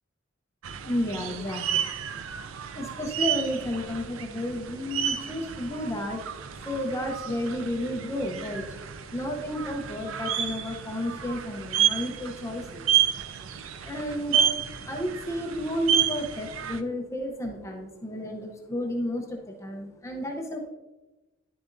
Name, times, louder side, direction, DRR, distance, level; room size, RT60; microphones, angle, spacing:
sound 1, 0.6-16.8, right 9 dB, 85° right, 0.4 m, -30 dB
voice 1, 0.8-2.2 2.7-6.2 6.6-8.8 9.1-12.9 13.8-20.7, left 1 dB, 15° left, 2 dB, 0.7 m, -32 dB
10.5 x 6.8 x 2.6 m, 1.1 s
head